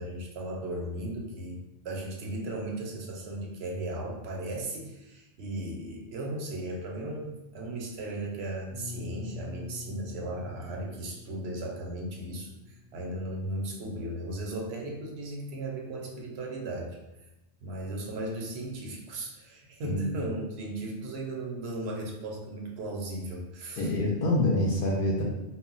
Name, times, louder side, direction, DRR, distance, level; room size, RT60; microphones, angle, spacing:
voice 1, 0.0-17.0 17.6-23.9, right 1 dB, 70° right, 0 dB, 0.8 m, -36 dB
sound 1, 8.7-14.5, left 3 dB, 25° left, 0.7 m, -46 dB
voice 2, 19.8-20.1 23.8-25.2, left 1 dB, 60° left, -3 dB, 0.6 m, -26 dB
2.1 x 2.1 x 3.7 m, 0.97 s
omnidirectional pair, 1.2 m